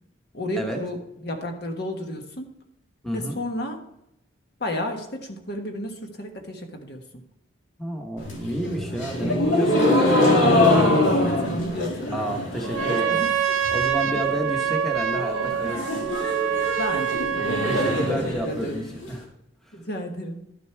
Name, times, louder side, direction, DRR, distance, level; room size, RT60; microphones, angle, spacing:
voice 1, 0.3-2.5 3.1-3.9 4.6-7.2 10.9-13.4 16.7-18.0 18.3-18.9 19.7-20.4, left 1 dB, 50° left, 3 dB, 1.4 m, -33 dB
voice 2, 3.0-3.4 7.8-10.3 12.1-13.2 13.7-16.1 17.7-19.3 19.7-19.8, right 1 dB, ahead, 1 dB, 1.1 m, -31 dB
sound 1, 8.2-13.2 13.5-14.0 14.3-14.4 14.7-14.8 15.1-19.1, left 1 dB, 70° left, 2.3 m, -23 dB
Trumpet, 12.6-18.1, right 8 dB, 90° right, 0.7 m, -26 dB
12.0 x 6.8 x 4.6 m, 0.81 s
head